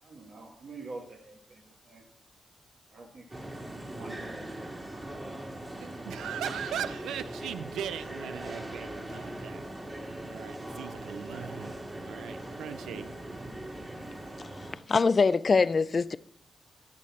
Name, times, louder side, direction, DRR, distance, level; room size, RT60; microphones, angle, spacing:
voice 1, 0.0-2.1 2.9-3.4 3.8-5.4 5.8-6.4, right 3 dB, 70° right, 1.8 m, -47 dB
sound 1, 3.3-14.8, right 1 dB, 30° right, 2.7 m, -40 dB
voice 2, 5.8-9.6 9.9-11.8 12.0-13.1, right 9 dB, 90° right, 0.4 m, -39 dB
voice 3, 14.9-16.2, left 4 dB, 50° left, 0.4 m, -23 dB
13.5 x 6.5 x 4.2 m
supercardioid pair, 50°, 0 cm